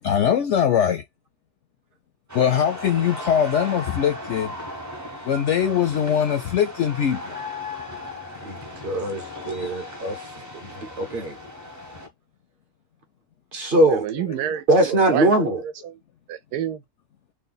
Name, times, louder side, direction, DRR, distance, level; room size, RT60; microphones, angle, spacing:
voice 1, 0.0-1.0 2.3-4.5 5.3-7.4, left 8 dB, 70° left, 0.7 m, -21 dB
New Year's Fireworks Crowd, 2.3-12.1, left 2 dB, 25° right, 0.4 m, -37 dB
voice 2, 8.4-11.4 13.5-14.1 14.7-15.6, right 1 dB, 45° right, 0.8 m, -22 dB
voice 3, 13.9-15.9 16.3-16.8, right 10 dB, 90° right, 1.1 m, -29 dB
3.2 x 2.2 x 3.8 m
omnidirectional pair, 1.6 m